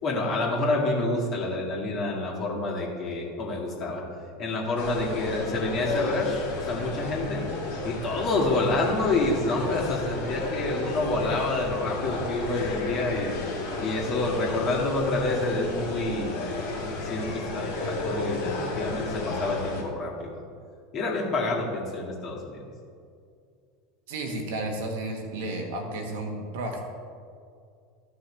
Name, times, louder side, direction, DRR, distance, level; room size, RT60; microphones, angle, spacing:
voice 1, 0.0-4.0 4.4-7.5 7.8-13.3 13.8-16.5 17.0-20.4 20.9-22.6, left 2 dB, 40° left, -3 dB, 2.3 m, -28 dB
sound 1, 4.8-19.8, left 3 dB, 65° left, 2.3 m, -33 dB
voice 2, 24.1-26.8, right 2 dB, 60° right, 2 dB, 1.3 m, -32 dB
14.0 x 6.1 x 3.4 m, 2.3 s
figure-of-eight pair, 80°, 0 cm